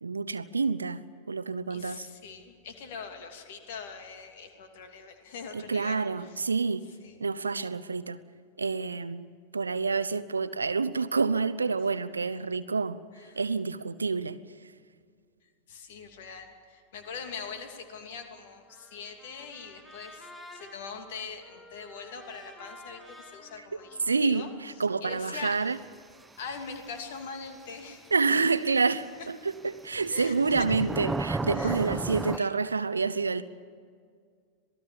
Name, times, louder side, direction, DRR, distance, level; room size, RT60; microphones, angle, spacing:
voice 1, 0.0-2.1 5.5-6.9 7.2-8.2 8.6-13.0 13.3-14.7 23.6-23.7 24.1-25.8 28.1-33.4, right 4 dB, 75° right, 13 dB, 0.7 m, -28 dB
voice 2, 1.7-6.4 7.0-7.2 13.2-13.4 15.7-24.5 25.0-25.6 26.4-28.0 29.2-29.3 30.1-30.7 31.5-31.9 32.3-32.5, left 5 dB, 55° left, 5 dB, 2.9 m, -42 dB
Trumpet, 18.7-24.9, left 1 dB, 10° left, 6.0 m, -51 dB
sound 1, 27.7-27.8 29.8-32.4, right 3 dB, 10° right, 0.6 m, -32 dB
26.5 x 19.0 x 7.2 m, 2.1 s
figure-of-eight pair, 90°, 0 cm